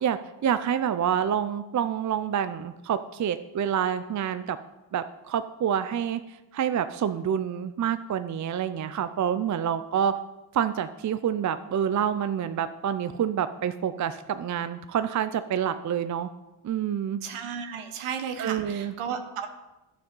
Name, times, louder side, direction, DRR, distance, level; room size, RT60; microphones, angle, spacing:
voice 1, 0.0-4.6 4.9-10.1 10.5-16.3 16.6-17.2 18.4-18.9, right 8 dB, 40° right, 11 dB, 0.5 m, -27 dB
voice 2, 17.2-19.5, right 7 dB, 85° right, 6 dB, 1.1 m, -34 dB
11.5 x 6.7 x 5.4 m, 1.0 s
cardioid pair, 95°, 48 cm